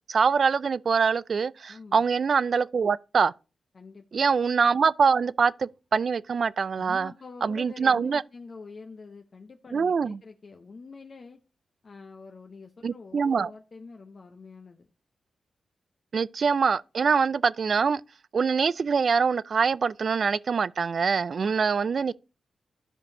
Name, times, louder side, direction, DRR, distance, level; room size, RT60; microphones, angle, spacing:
voice 1, 0.1-3.3 4.1-7.1 7.4-8.2 9.7-10.2 12.8-13.5 16.1-18.0 18.3-22.1, right 5 dB, 65° right, 0.3 m, -24 dB
voice 2, 1.7-2.0 3.7-4.2 6.8-11.4 11.8-14.9 21.4-21.6, left 4 dB, 55° left, 0.8 m, -46 dB
13.0 x 5.2 x 2.7 m
cardioid pair, 50°, 0 cm